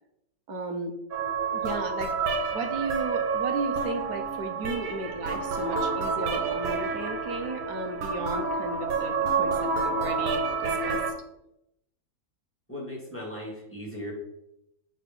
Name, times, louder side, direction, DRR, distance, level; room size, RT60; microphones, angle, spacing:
voice 1, 0.5-0.9 1.5-2.1 2.5-11.0, right 3 dB, 60° right, 5 dB, 1.2 m, -35 dB
sound 1, 1.1-11.1, right 4 dB, 85° right, 1.7 m, -29 dB
voice 2, 12.7-14.1, left 1 dB, 5° left, -4 dB, 2.1 m, -37 dB
7.6 x 3.8 x 5.3 m, 0.83 s
omnidirectional pair, 2.1 m